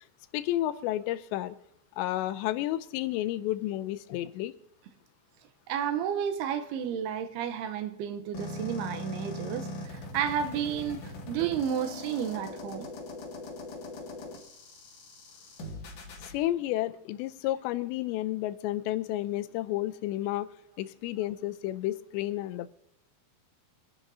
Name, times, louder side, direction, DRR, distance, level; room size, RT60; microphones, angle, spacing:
voice 1, 0.3-1.6 2.0-4.5 16.2-20.5 20.8-22.7, left 14 dB, 90° left, 2.9 m, -31 dB
voice 2, 5.7-12.9, right 8 dB, 75° right, 2.6 m, -32 dB
sound 1, 8.3-16.3, left 2 dB, 55° left, 3.1 m, -40 dB
25.0 x 11.0 x 2.7 m
omnidirectional pair, 5.0 m